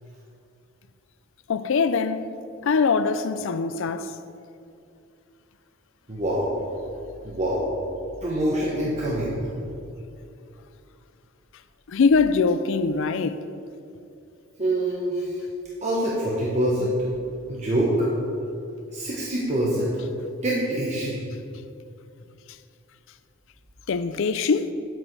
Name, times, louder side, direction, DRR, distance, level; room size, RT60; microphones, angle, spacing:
voice 1, 1.5-2.3 2.6-4.1 11.9-13.4 23.9-24.7, left 4 dB, 65° left, 0.4 m, -22 dB
voice 2, 6.1-6.5 7.2-7.7 8.2-9.4 14.6-15.4 15.8-16.9 17.5-18.1 18.9-19.9 20.4-21.2, right 1 dB, 35° right, 1.2 m, -25 dB
9.3 x 7.8 x 4.7 m
head